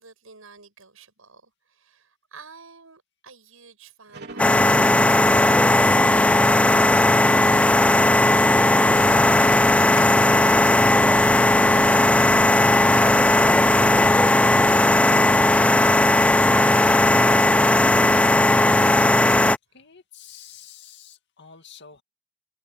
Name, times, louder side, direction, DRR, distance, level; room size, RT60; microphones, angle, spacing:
voice 1, 0.0-9.0 9.8-16.4 16.6-17.9 19.7-19.8 21.5-21.6, right 5 dB, 85° right, 7.0 m, -47 dB
sound 1, 4.1-9.4, right 2 dB, 55° right, 4.0 m, -44 dB
sound 2, 4.4-19.6, left 1 dB, 5° left, 0.3 m, -17 dB
sound 3, 8.8-14.2, left 2 dB, 80° left, 7.8 m, -41 dB
voice 2, 18.6-19.4 19.7-22.0, left 8 dB, 60° left, 2.2 m, -48 dB
head